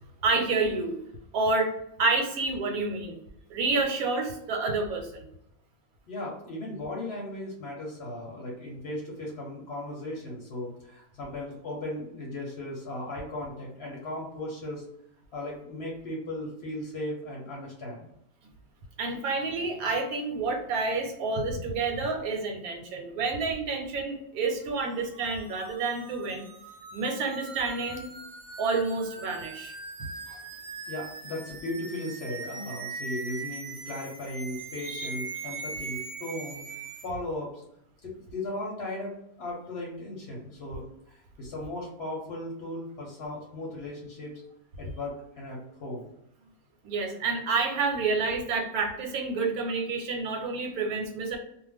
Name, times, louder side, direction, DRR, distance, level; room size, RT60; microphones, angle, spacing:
voice 1, 0.2-1.0 1.3-1.7 2.0-3.2 3.5-5.3 19.0-26.5 26.9-28.1 28.6-29.7 30.3-30.4 34.9-35.1 46.8-51.4, right 3 dB, 90° right, 3 dB, 1.1 m, -29 dB
voice 2, 6.1-14.8 15.3-18.1 30.9-36.6 37.0-37.6 38.0-44.3 44.8-46.1, left 1 dB, 55° left, -3 dB, 0.9 m, -37 dB
sound 1, 24.8-37.1, right 3 dB, 75° right, 0.5 m, -41 dB
2.4 x 2.2 x 3.3 m, 0.79 s
omnidirectional pair, 1.5 m